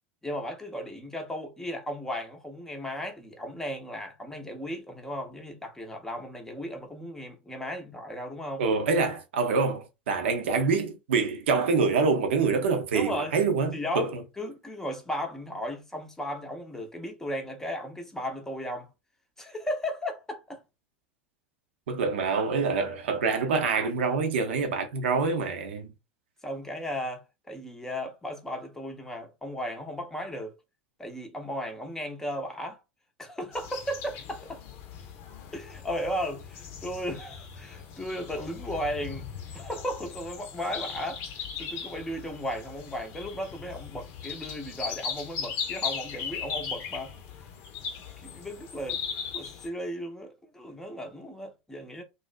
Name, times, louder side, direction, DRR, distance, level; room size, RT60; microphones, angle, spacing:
voice 1, 0.2-8.6 12.9-13.4 13.7-14.1 14.4-18.9 19.4-20.6 26.4-27.2 27.5-30.6 31.0-32.8 33.2-34.6 35.5-39.3 39.5-41.2 41.6-47.1 48.2-49.0 49.3-52.0, equal, 5° left, 0.7 m, -35 dB
voice 2, 8.6-14.2 21.9-25.9, right 4 dB, 65° right, 0.6 m, -26 dB
sound 1, 33.5-49.7, left 6 dB, 45° left, 0.6 m, -38 dB
2.5 x 2.1 x 2.5 m
figure-of-eight pair, 85°, 7 cm